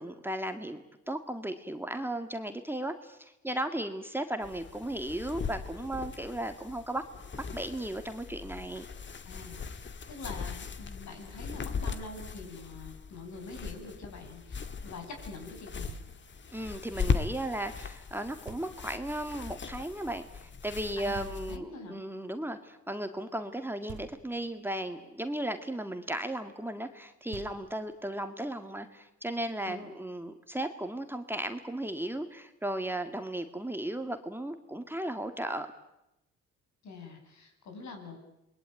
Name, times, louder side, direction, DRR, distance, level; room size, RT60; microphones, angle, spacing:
voice 1, 0.0-7.0 7.5-8.9 16.5-35.7, right 1 dB, 5° right, 7 dB, 2.0 m, -36 dB
sound 1, 4.4-21.6, left 5 dB, 40° left, 1.8 m, -39 dB
voice 2, 9.2-16.0 21.0-22.0 29.6-29.9 36.8-38.2, left 3 dB, 65° left, 4 dB, 7.5 m, -45 dB
Knock, 15.9-16.5 18.5-19.1 21.1-21.9 23.9-24.6 26.9-27.0 27.3-28.1, right 8 dB, 75° right, 3.0 m, -49 dB
27.5 x 21.5 x 9.3 m, 0.90 s
cardioid pair, 90°, 30 cm